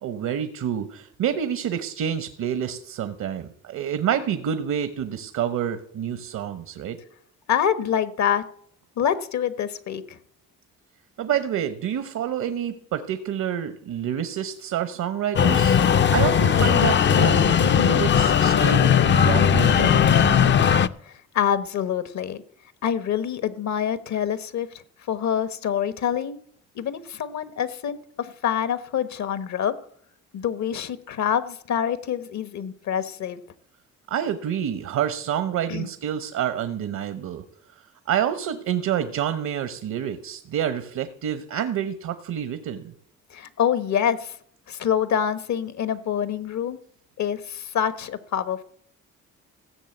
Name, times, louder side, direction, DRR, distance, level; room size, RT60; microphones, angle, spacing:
voice 1, 0.0-7.0 11.2-15.8 16.1-20.7 34.1-37.4 38.1-42.9, right 9 dB, 70° right, 11 dB, 1.0 m, -28 dB
voice 2, 7.5-8.4 9.0-10.2 21.1-22.4 22.8-24.7 25.1-26.4 26.7-29.7 30.3-33.4 35.7-35.9 43.3-44.3 44.7-46.8 47.2-48.6, left 8 dB, 65° left, 14 dB, 1.1 m, -26 dB
sound 1, 15.4-20.9, left 8 dB, 40° left, 0.5 m, -18 dB
15.5 x 6.6 x 7.8 m, 0.66 s
cardioid pair, 90°, 30 cm